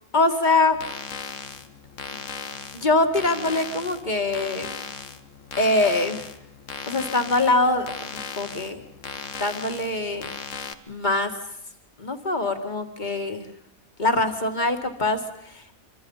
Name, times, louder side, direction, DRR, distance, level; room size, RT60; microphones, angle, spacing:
voice 1, 0.1-0.8 2.7-4.7 5.6-6.3 6.9-8.1 8.4-8.8 9.4-10.3 10.9-11.3 12.0-13.5 14.0-15.6, left 2 dB, 30° left, 6 dB, 1.9 m, -23 dB
sound 1, 0.7-10.7, left 6 dB, 65° left, 1.4 m, -37 dB
26.0 x 25.5 x 5.5 m, 0.78 s
omnidirectional pair, 1.5 m